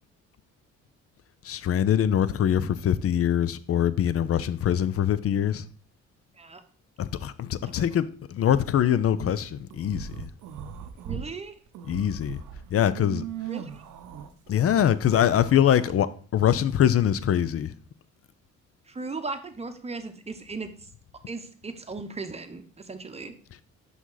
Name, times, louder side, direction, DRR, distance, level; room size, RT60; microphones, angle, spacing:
voice 1, 1.4-5.6 7.0-10.3 11.9-12.4 12.7-13.2 14.5-17.7, left 10 dB, 50° left, 0.5 m, -23 dB
sound 1, 9.7-11.3 11.7-15.9, right 9 dB, 85° right, 0.7 m, -39 dB
voice 2, 11.0-11.5 13.5-13.8 18.9-20.7 21.3-23.3, right 3 dB, 20° right, 0.9 m, -37 dB
6.0 x 5.5 x 3.9 m
cardioid pair, 90°, 30 cm